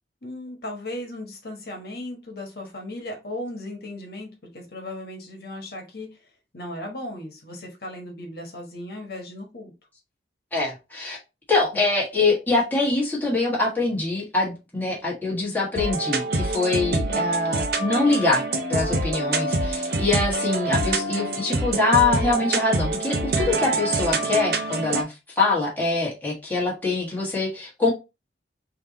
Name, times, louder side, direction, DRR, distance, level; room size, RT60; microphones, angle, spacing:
voice 1, 0.2-6.1 6.5-9.7 17.0-17.4, left 1 dB, 55° left, 1.2 m, -36 dB
voice 2, 10.5-11.2 11.5-18.4 18.7-27.9, left 3 dB, 10° left, 1.4 m, -24 dB
sound 1, 15.8-25.0, right 2 dB, 55° right, 0.6 m, -25 dB
3.6 x 2.9 x 4.0 m
head